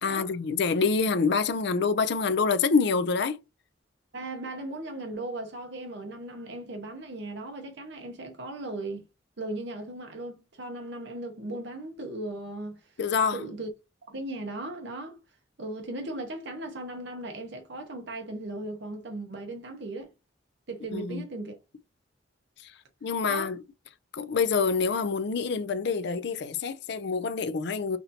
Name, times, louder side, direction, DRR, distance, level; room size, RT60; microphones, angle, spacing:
voice 1, 0.0-3.4 13.0-13.4 20.9-21.2 23.0-23.6 24.1-28.0, left 5 dB, 65° left, 0.5 m, -26 dB
voice 2, 4.1-9.0 9.4-12.9 13.3-13.7 14.1-15.2 15.6-20.1 20.7-21.6 23.2-23.6, right 2 dB, 70° right, 0.9 m, -37 dB
5.9 x 2.6 x 2.7 m
head